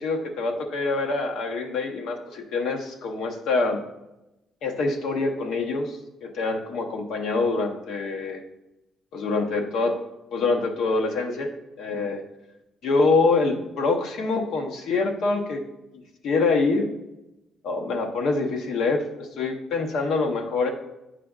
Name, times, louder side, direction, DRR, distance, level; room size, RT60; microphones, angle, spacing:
voice 1, 0.0-3.8 4.6-8.4 9.1-10.0 10.3-11.5 11.8-12.2 12.8-15.6 16.2-17.0 17.6-20.7, left 3 dB, 75° left, 4 dB, 0.8 m, -25 dB
8.7 x 4.9 x 2.4 m, 0.93 s
cardioid pair, 180°, 0 cm